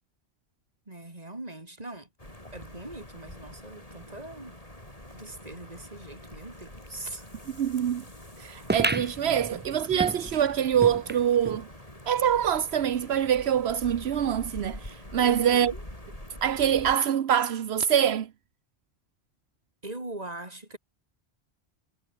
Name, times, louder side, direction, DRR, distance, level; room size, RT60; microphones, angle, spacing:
voice 1, 0.9-2.1 2.5-4.6 5.1-7.3 9.3-9.6 9.9-10.1 15.2-15.8 19.8-20.8, right 2 dB, 40° right, 3.7 m, -41 dB
sound 1, 2.2-17.0, left 1 dB, 35° left, 6.6 m, -45 dB
voice 2, 7.6-8.0 8.4-11.7 12.1-15.7 16.4-18.3, right 9 dB, 80° right, 1.1 m, -25 dB
sound 2, 8.7-11.6 12.1-12.2 12.4-12.5 13.3-13.4, right 2 dB, 15° right, 0.5 m, -32 dB
omnidirectional pair, 1.1 m